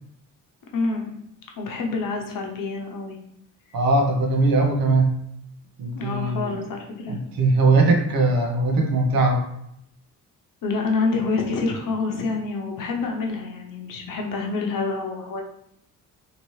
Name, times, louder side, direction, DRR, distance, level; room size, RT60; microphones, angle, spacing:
voice 1, 0.7-1.1 1.6-3.2 5.9-7.1 10.6-15.4, left 3 dB, 70° left, 1 dB, 0.7 m, -27 dB
voice 2, 3.7-5.1 5.8-6.5 7.1-9.4, right 2 dB, 80° right, 3 dB, 0.7 m, -20 dB
2.8 x 2.7 x 3.1 m, 0.76 s
wide cardioid pair, 150°, 35 cm